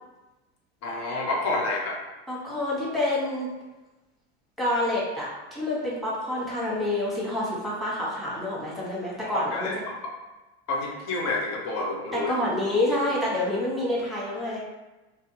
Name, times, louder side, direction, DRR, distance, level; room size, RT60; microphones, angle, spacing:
voice 1, 0.8-2.0 9.2-9.8 10.7-12.3, left 2 dB, 55° left, -1 dB, 0.8 m, -29 dB
voice 2, 2.3-3.5 4.6-9.7 12.1-14.6, left 1 dB, ahead, -7 dB, 1.0 m, -27 dB
2.5 x 2.3 x 2.7 m, 1.1 s
supercardioid pair, 95°, 33 cm